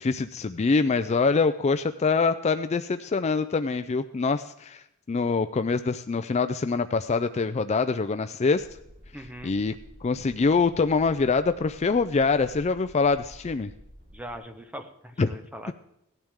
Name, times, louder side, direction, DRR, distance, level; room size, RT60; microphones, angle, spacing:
voice 1, 0.0-8.7 9.4-9.7 10.0-13.7 15.2-15.3, left 4 dB, 30° left, 10 dB, 0.4 m, -24 dB
sound 1, 8.5-14.4, equal, 40° right, 3.6 m, -50 dB
voice 2, 9.1-9.5 14.1-15.7, equal, 5° right, 6 dB, 1.1 m, -41 dB
17.5 x 12.0 x 3.6 m, 0.82 s
head